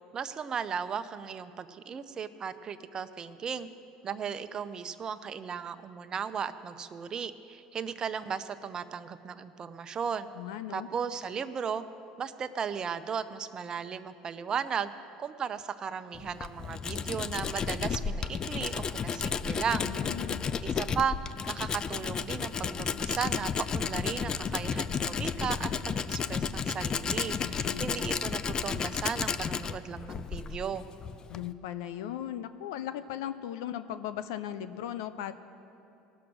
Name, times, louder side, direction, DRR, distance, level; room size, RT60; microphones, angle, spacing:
voice 1, 0.1-3.7 4.0-10.3 10.7-11.8 12.2-14.9 15.2-19.9 20.6-21.2 21.5-30.9, right 7 dB, 35° right, 11 dB, 0.6 m, -36 dB
voice 2, 10.4-10.9 19.8-20.4 27.4-28.0 31.3-35.3, left 11 dB, 85° left, 12 dB, 0.5 m, -37 dB
Tools, 16.1-31.5, left 6 dB, 35° left, 0.4 m, -33 dB
18.0 x 6.2 x 6.2 m, 2.7 s
supercardioid pair, 105°, 2 cm